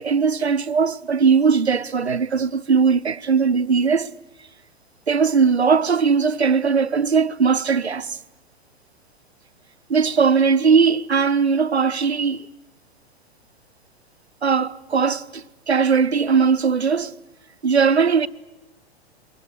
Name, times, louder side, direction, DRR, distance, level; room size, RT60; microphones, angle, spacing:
voice 1, 0.0-4.1 5.1-8.2 9.9-12.5 14.4-17.1 17.6-18.3, right 5 dB, 85° right, 0.8 m, -19 dB
23.0 x 20.5 x 9.8 m
figure-of-eight pair, 105°, 32 cm